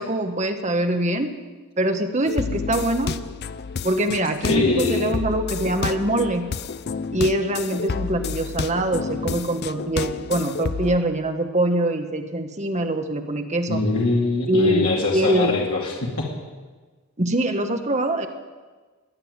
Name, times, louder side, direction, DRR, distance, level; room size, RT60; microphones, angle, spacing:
voice 1, 0.0-1.3 1.8-3.2 3.8-6.5 7.1-13.8 14.5-15.5 17.2-18.3, right 1 dB, 30° right, 6 dB, 1.2 m, -23 dB
sound 1, 2.3-11.0, left 5 dB, 45° left, 0.5 m, -30 dB
voice 2, 4.4-5.1 13.7-16.3, left 3 dB, 80° left, -2 dB, 2.4 m, -23 dB
21.0 x 7.0 x 9.5 m, 1.4 s
head